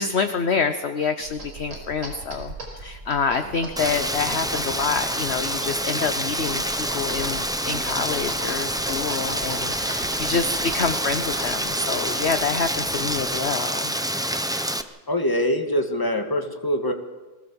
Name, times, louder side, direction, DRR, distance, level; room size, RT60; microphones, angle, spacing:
voice 1, 0.0-14.0, left 5 dB, 45° left, 8 dB, 1.0 m, -27 dB
sound 1, 1.2-13.4, right 1 dB, 65° right, 5.2 m, -38 dB
Rain, 3.8-14.8, equal, 5° right, 0.4 m, -27 dB
voice 2, 15.1-16.9, left 1 dB, 10° left, 4 dB, 1.9 m, -24 dB
23.0 x 17.0 x 7.1 m, 1.2 s
omnidirectional pair, 1.9 m